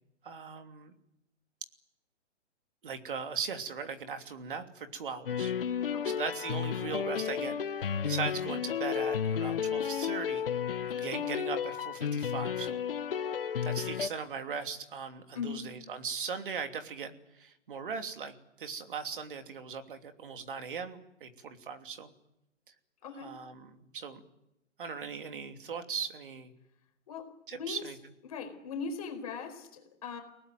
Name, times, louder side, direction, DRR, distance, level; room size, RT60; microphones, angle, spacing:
voice 1, 0.2-0.9 2.8-5.5 6.0-10.5 10.9-12.8 13.6-22.1 23.1-24.2 24.8-26.5 27.5-28.0, right 6 dB, 45° right, 6 dB, 3.0 m, -39 dB
sound 1, 5.3-14.1, left 8 dB, 50° left, 1.1 m, -32 dB
voice 2, 23.0-23.3 27.1-27.8 28.2-30.2, left 5 dB, 30° left, 5 dB, 4.5 m, -39 dB
30.0 x 19.0 x 9.4 m, 0.88 s
hypercardioid pair, 175°, 36 cm